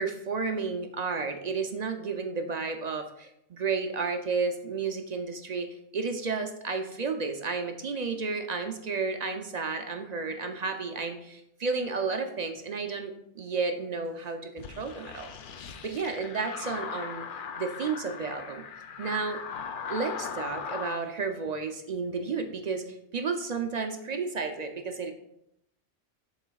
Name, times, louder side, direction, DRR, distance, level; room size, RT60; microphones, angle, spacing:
voice 1, 0.0-5.7 5.9-15.3 15.8-17.2 17.6-18.6 19.0-19.4 19.9-25.1, right 4 dB, 55° right, 5 dB, 0.5 m, -32 dB
sound 1, 14.6-21.0, left 6 dB, 60° left, 0.6 m, -39 dB
11.5 x 3.9 x 2.3 m, 0.80 s
omnidirectional pair, 1.2 m